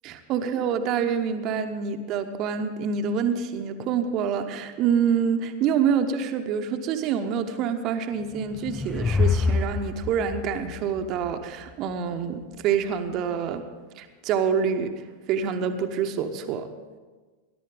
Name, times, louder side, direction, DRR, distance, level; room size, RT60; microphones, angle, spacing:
voice 1, 0.0-13.6 14.0-14.9 15.3-16.7, right 7 dB, 40° right, 7 dB, 1.0 m, -26 dB
sound 1, 8.2-11.7, left 4 dB, 10° left, 0.6 m, -27 dB
20.0 x 11.0 x 3.8 m, 1.3 s
figure-of-eight pair, 90°, 0 cm